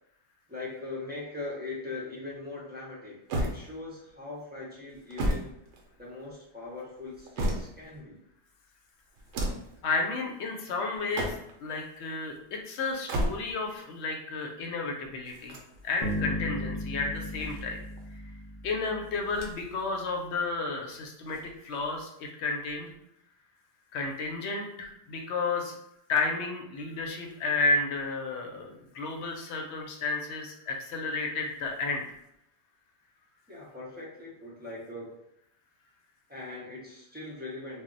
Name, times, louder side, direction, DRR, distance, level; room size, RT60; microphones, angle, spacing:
voice 1, 0.5-5.5 6.0-8.2 33.5-35.2 36.3-37.8, left 3 dB, 15° right, -6 dB, 0.4 m, -40 dB
sound 1, 3.3-4.1 4.9-6.3 6.9-8.0 9.1-9.8 10.9-11.7 12.9-13.7 15.3-16.2 17.1-18.0 19.2-19.8 20.1-20.2 21.2-22.0, right 1 dB, 75° right, 0.9 m, -34 dB
voice 2, 9.8-11.3 11.6-15.6 15.8-17.8 18.6-21.4 21.6-22.9 23.9-25.8 26.1-32.0, left 3 dB, 70° left, 2 dB, 0.8 m, -32 dB
Bass guitar, 16.0-19.1, left 1 dB, 50° left, 0.5 m, -35 dB
2.2 x 2.0 x 3.7 m, 0.77 s
omnidirectional pair, 1.2 m